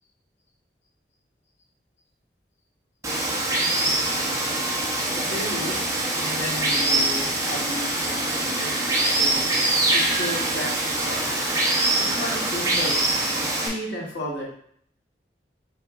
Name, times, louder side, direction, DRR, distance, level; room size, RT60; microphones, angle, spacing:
Water, 3.0-13.7, right 2 dB, 20° right, 0.6 m, -24 dB
voice 1, 5.1-5.8 6.2-9.4 9.9-11.4 12.0-13.0 13.6-14.4, left 1 dB, 90° left, -3 dB, 1.1 m, -34 dB
5.1 x 3.0 x 2.3 m, 0.65 s
head